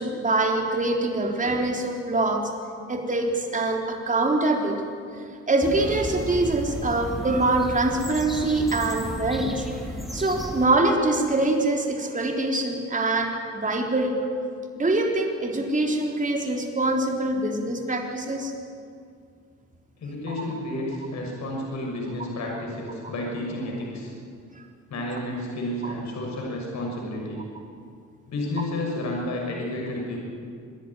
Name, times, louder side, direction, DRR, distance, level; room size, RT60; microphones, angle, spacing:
voice 1, 0.0-2.5 2.9-4.8 5.5-9.6 10.1-14.2 14.8-18.5 20.3-20.4 25.8-25.9, right 2 dB, 25° right, 2 dB, 3.7 m, -24 dB
sound 1, 5.6-10.7, right 1 dB, ahead, 2.4 m, -33 dB
voice 2, 20.0-24.1 24.9-27.4 28.3-30.2, left 1 dB, 65° left, -1 dB, 6.5 m, -31 dB
26.0 x 11.0 x 9.9 m, 2.2 s
cardioid pair, 90°, 30 cm